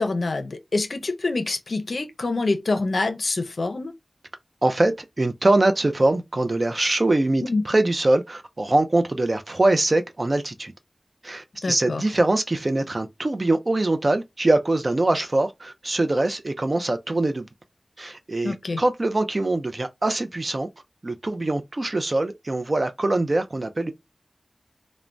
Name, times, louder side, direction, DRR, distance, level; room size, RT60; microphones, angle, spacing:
voice 1, 0.0-3.9 7.5-7.6 11.6-12.0 18.4-18.8, left 3 dB, 70° left, 0.5 m, -26 dB
voice 2, 4.6-10.7 11.2-17.5 18.0-20.7 21.0-23.9, right 2 dB, 40° right, 0.4 m, -23 dB
3.2 x 2.1 x 2.4 m
wide cardioid pair, 80°, 0 cm